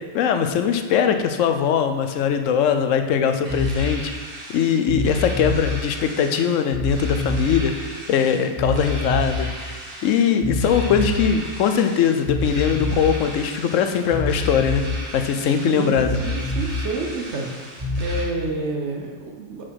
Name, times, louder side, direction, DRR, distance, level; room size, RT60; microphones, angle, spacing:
voice 1, 0.1-4.1 4.5-9.7 10.0-14.8 15.1-16.1, left 7 dB, 85° left, 7 dB, 1.0 m, -21 dB
sound 1, 3.4-18.2, left 1 dB, 30° right, 1.4 m, -28 dB
voice 2, 15.7-17.5 18.0-19.6, right 2 dB, 65° right, 2 dB, 1.2 m, -29 dB
6.3 x 6.0 x 4.7 m, 1.5 s
omnidirectional pair, 1.3 m